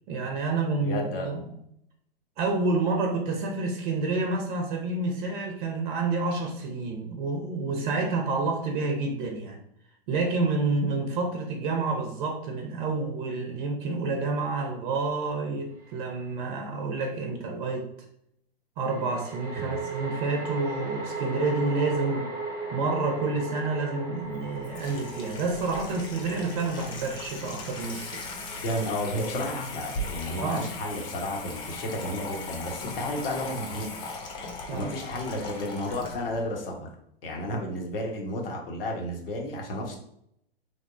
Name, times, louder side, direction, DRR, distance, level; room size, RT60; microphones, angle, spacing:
voice 1, 0.1-1.6 2.4-9.6 10.1-17.8 18.8-22.3 22.7-28.2 30.4-30.6 34.7-34.9, right 3 dB, 50° right, 2 dB, 0.7 m, -29 dB
voice 2, 0.8-1.3 19.6-19.7 28.6-33.9 34.7-36.9 37.2-40.0, left 1 dB, 65° left, 0 dB, 1.0 m, -32 dB
sound 1, 15.8-16.0 18.8-30.2, right 3 dB, 10° right, 0.7 m, -38 dB
Water tap faucet / Sink (filling or washing), 24.2-36.4, left 2 dB, 15° left, 0.3 m, -38 dB
3.4 x 2.0 x 2.5 m, 0.72 s
hypercardioid pair, 110°, 31 cm